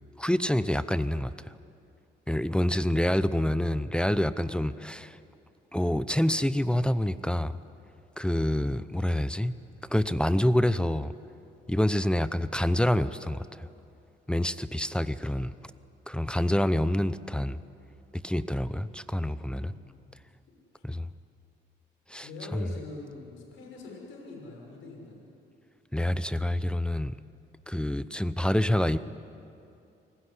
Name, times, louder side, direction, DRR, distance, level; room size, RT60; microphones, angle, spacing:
voice 1, 0.2-1.3 2.3-5.2 5.7-7.5 8.2-9.5 9.9-11.1 11.7-13.7 14.3-15.5 16.1-17.6 18.2-19.7 20.8-21.1 22.1-22.7 25.9-27.2 27.7-29.0, left 1 dB, 5° left, 14 dB, 0.8 m, -27 dB
voice 2, 19.5-20.1 20.7-20.8 22.2-25.2, left 3 dB, 85° left, 1 dB, 6.2 m, -44 dB
29.0 x 20.5 x 10.0 m, 2.7 s
cardioid pair, 90°, 20 cm